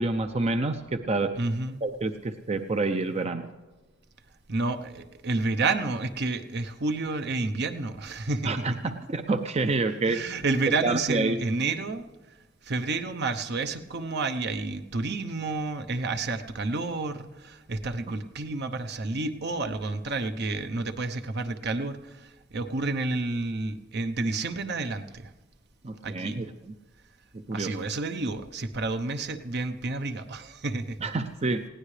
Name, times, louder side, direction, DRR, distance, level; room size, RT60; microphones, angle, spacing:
voice 1, 0.0-1.3 1.8-3.5 8.4-10.2 10.8-11.4 25.8-26.7 27.5-27.8 31.0-31.6, right 3 dB, 35° right, 8 dB, 0.6 m, -28 dB
voice 2, 1.4-1.8 4.5-8.5 10.1-12.1 12.6-25.3 26.0-26.5 27.5-31.0, right 3 dB, 60° right, 8 dB, 0.9 m, -30 dB
20.0 x 16.0 x 3.3 m, 1.2 s
head